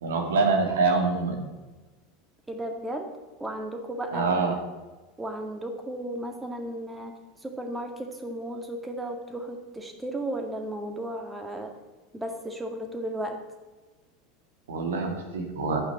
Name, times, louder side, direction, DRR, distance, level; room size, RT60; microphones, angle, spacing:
voice 1, 0.0-1.4 4.1-4.5 14.7-15.8, right 4 dB, 70° right, 3 dB, 2.4 m, -25 dB
voice 2, 2.5-3.1 3.4-4.3 5.2-7.1 7.4-11.7 12.1-13.4, right 1 dB, 10° right, 4 dB, 2.1 m, -34 dB
11.5 x 8.9 x 7.0 m, 1.2 s
figure-of-eight pair, 80°, 0 cm